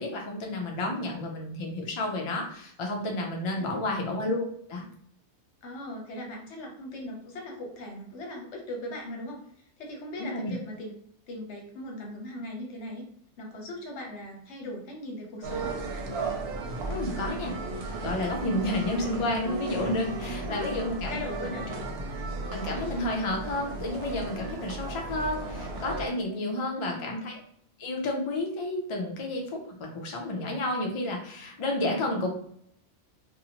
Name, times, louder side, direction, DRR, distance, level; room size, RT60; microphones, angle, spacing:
voice 1, 0.0-4.8 10.2-10.5 16.9-21.2 22.5-27.4 27.8-32.3, left 1 dB, 45° left, 1 dB, 0.4 m, -31 dB
voice 2, 3.5-3.9 5.6-11.0 11.3-13.0 13.4-15.8 20.4-20.7 21.1-21.7 26.5-27.1, left 1 dB, 75° left, 1 dB, 1.0 m, -39 dB
sound 1, 15.4-26.1, right 2 dB, 65° right, 0.7 m, -35 dB
2.7 x 2.0 x 2.8 m, 0.65 s
omnidirectional pair, 1.2 m